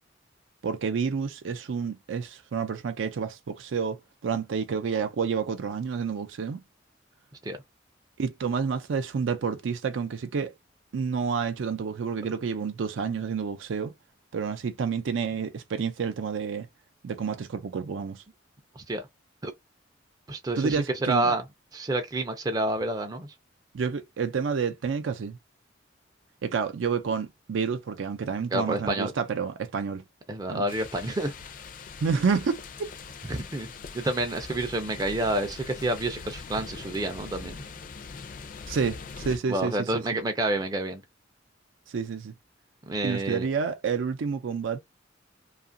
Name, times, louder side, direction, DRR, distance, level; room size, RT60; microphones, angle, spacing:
voice 1, 0.6-6.6 8.2-10.5 10.9-13.9 14.3-16.7 17.0-18.2 20.6-21.3 23.7-25.4 26.4-30.0 30.5-30.6 32.0-32.7 38.7-39.9 41.9-42.3 43.0-44.8, right 5 dB, 85° right, 0.4 m, -29 dB
voice 2, 20.3-21.4 21.7-23.3 28.5-29.1 30.3-31.3 33.3-33.7 33.9-37.6 39.5-41.0 42.9-43.5, right 2 dB, 20° right, 0.4 m, -29 dB
sound 1, 30.7-39.4, left 4 dB, 45° left, 0.4 m, -42 dB
2.7 x 2.4 x 2.5 m
head